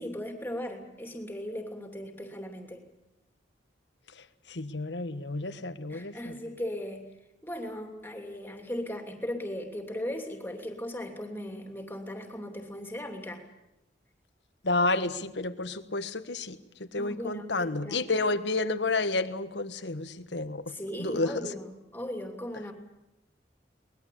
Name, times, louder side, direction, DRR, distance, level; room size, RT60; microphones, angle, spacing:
voice 1, 0.0-2.8 5.9-7.1 7.4-13.4 17.0-18.0 20.7-22.7, left 1 dB, 10° left, 4 dB, 2.9 m, -37 dB
voice 2, 4.5-6.1 14.6-20.6 21.0-21.5, left 3 dB, 85° left, 11 dB, 1.4 m, -30 dB
22.5 x 20.5 x 8.6 m, 0.88 s
head